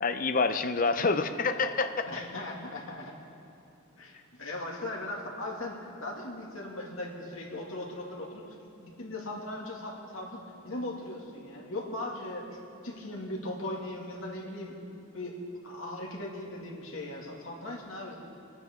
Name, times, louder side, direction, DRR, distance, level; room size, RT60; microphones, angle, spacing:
voice 1, 0.0-2.1, left 4 dB, 40° left, 9 dB, 0.6 m, -27 dB
voice 2, 2.1-3.1 4.0-8.4 8.8-12.5 12.8-14.7 15.1-15.3 15.6-18.2, left 1 dB, 70° left, -1 dB, 2.2 m, -38 dB
23.5 x 9.6 x 3.6 m, 2.8 s
head